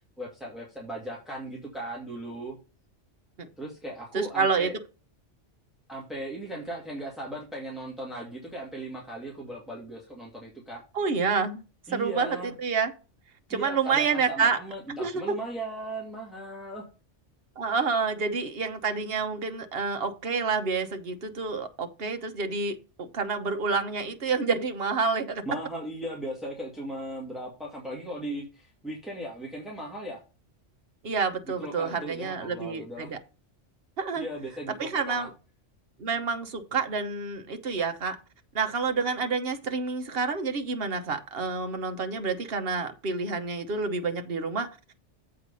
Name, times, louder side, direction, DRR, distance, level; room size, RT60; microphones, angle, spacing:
voice 1, 0.2-2.6 3.6-4.8 5.9-10.8 11.9-12.5 13.5-16.8 25.4-30.2 31.6-33.1 34.2-35.3, right 1 dB, ahead, 2.3 m, -37 dB
voice 2, 4.1-4.7 10.9-11.6 11.9-12.9 13.5-14.6 14.9-15.4 17.6-25.4 31.0-33.2 34.0-34.3 34.8-35.3 36.0-38.2 38.5-44.7, right 5 dB, 55° right, 1.3 m, -28 dB
8.0 x 4.9 x 5.4 m
omnidirectional pair, 1.2 m